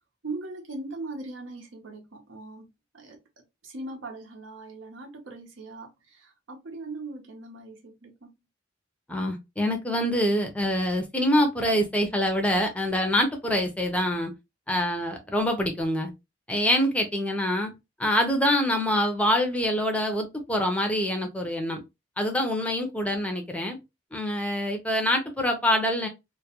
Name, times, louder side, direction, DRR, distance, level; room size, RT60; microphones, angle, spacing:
voice 1, 0.2-2.7 2.9-8.3, right 2 dB, 90° right, 0.8 m, -40 dB
voice 2, 9.1-14.3 14.7-16.1 16.5-17.7 18.0-21.8 22.2-23.8 24.1-26.1, equal, 5° left, 0.4 m, -25 dB
2.3 x 2.1 x 2.8 m
head